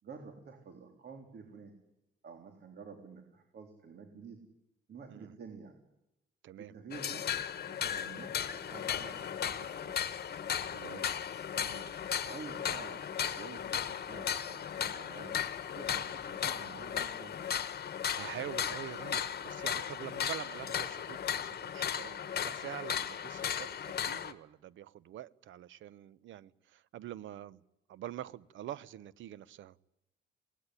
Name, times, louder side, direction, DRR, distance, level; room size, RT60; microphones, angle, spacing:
voice 1, 0.0-1.8 2.2-4.4 4.9-5.7 6.6-7.3 7.7-10.0 11.5-11.9 12.2-15.4 15.8-17.4, right 5 dB, 55° right, 3.6 m, -50 dB
sound 1, 6.9-24.3, left 8 dB, 55° left, 1.4 m, -36 dB
voice 2, 10.6-11.1 18.1-27.6 27.9-29.8, right 12 dB, 75° right, 0.9 m, -45 dB
20.5 x 18.5 x 10.0 m
cardioid pair, 90°, 20 cm